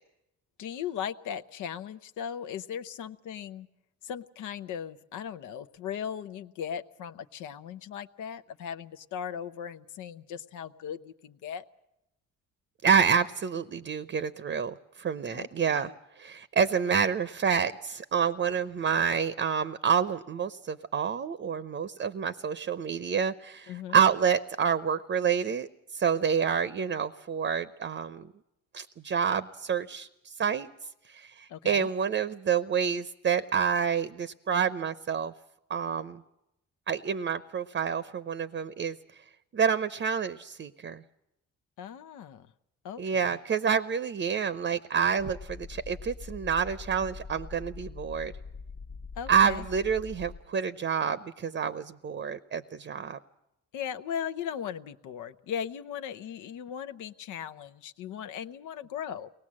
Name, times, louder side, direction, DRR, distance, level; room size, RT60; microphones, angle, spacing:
voice 1, 0.6-3.7 4.0-11.6 15.3-15.9 23.7-24.0 31.5-31.9 41.8-42.5 42.8-43.4 49.2-49.6 53.7-59.3, left 8 dB, 85° left, 9 dB, 0.8 m, -38 dB
voice 2, 12.8-15.9 16.2-28.3 28.7-30.7 31.1-35.3 35.7-36.2 36.9-39.0 39.5-41.0 43.0-48.3 49.3-53.2, right 7 dB, 40° right, 13 dB, 0.7 m, -28 dB
sound 1, 45.2-50.5, left 4 dB, 40° left, 1.0 m, -43 dB
23.0 x 18.5 x 7.5 m, 0.87 s
cardioid pair, 90°, 30 cm